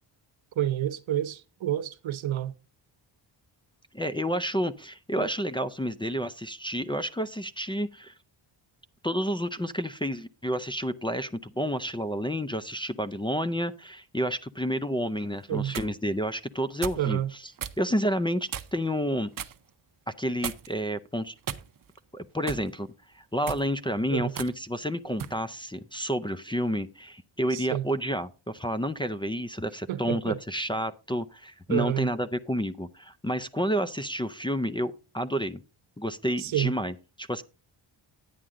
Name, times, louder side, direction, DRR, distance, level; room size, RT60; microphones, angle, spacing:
voice 1, 0.6-2.5 5.2-5.3 15.5-15.8 17.0-17.3 24.1-24.3 27.5-27.9 29.9-30.4 31.7-32.1 36.4-36.7, right 12 dB, 80° right, 0.9 m, -29 dB
voice 2, 3.9-8.1 9.0-17.5 17.8-19.3 20.1-21.3 22.1-22.9 23.1-35.6 36.0-37.4, equal, 10° left, 0.4 m, -30 dB
sound 1, 15.4-15.9 16.8-17.1 17.6-17.8 18.5-18.9 19.4-19.6 20.4-20.8 21.4-22.0 22.5-22.7 23.3-23.7 24.4-24.5 25.2-25.4, right 8 dB, 45° right, 0.7 m, -36 dB
10.0 x 9.2 x 3.7 m
wide cardioid pair, 150°, 46 cm